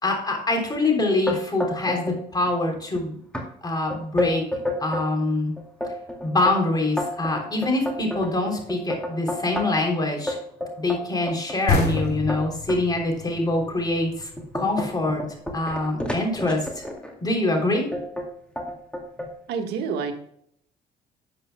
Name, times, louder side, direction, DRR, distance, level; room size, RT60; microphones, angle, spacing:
voice 1, 0.0-3.2 3.6-4.4 4.8-5.5 6.2-10.4 10.8-15.2 15.5-16.7 17.2-17.9, left 2 dB, 25° left, 2 dB, 3.3 m, -24 dB
sound 1, 1.3-2.2 2.5-3.0 3.3-3.5 3.9-5.1 5.6-9.9 10.3-12.8 13.4-13.6 14.1-17.1 17.9-18.3 18.6-19.3, left 1 dB, 5° left, 2.2 m, -30 dB
sound 2, 11.7-15.1, left 4 dB, 60° left, 3.4 m, -28 dB
voice 2, 19.5-20.1, right 6 dB, 80° right, 4 dB, 1.6 m, -27 dB
12.5 x 7.7 x 2.2 m, 0.69 s
cardioid pair, 110°, 17 cm